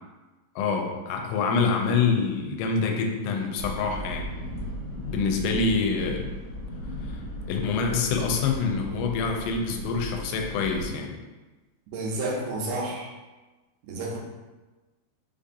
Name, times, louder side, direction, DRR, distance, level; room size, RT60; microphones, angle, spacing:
voice 1, 0.6-4.3 5.1-6.3 7.0-7.2 7.5-11.2, left 5 dB, 85° left, 2 dB, 2.8 m, -26 dB
sound 1, 3.6-10.9, equal, 70° left, 1.8 m, -36 dB
voice 2, 11.9-13.1 13.8-14.2, right 2 dB, 75° right, -2 dB, 2.6 m, -30 dB
6.7 x 2.7 x 2.5 m, 1.2 s
omnidirectional pair, 5.0 m